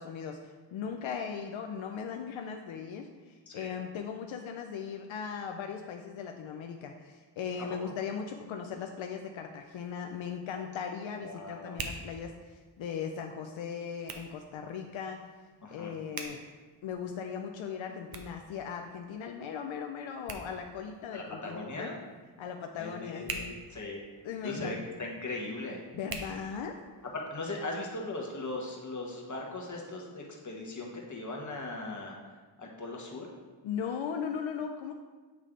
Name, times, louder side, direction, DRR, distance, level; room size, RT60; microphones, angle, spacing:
voice 1, 0.0-15.2 15.7-16.4 16.8-21.9 22.4-23.5 24.2-24.8 25.9-26.8 33.6-34.9, left 7 dB, 85° left, 4 dB, 0.5 m, -38 dB
Hands, 9.5-27.2, right 3 dB, 50° right, 0.8 m, -48 dB
voice 2, 11.2-11.8 15.6-15.9 21.1-21.9 22.8-24.0 24.4-25.8 27.1-32.2 32.6-33.3, left 2 dB, 40° left, -1 dB, 1.4 m, -39 dB
8.3 x 3.2 x 3.7 m, 1.3 s
cardioid pair, 60°, 45 cm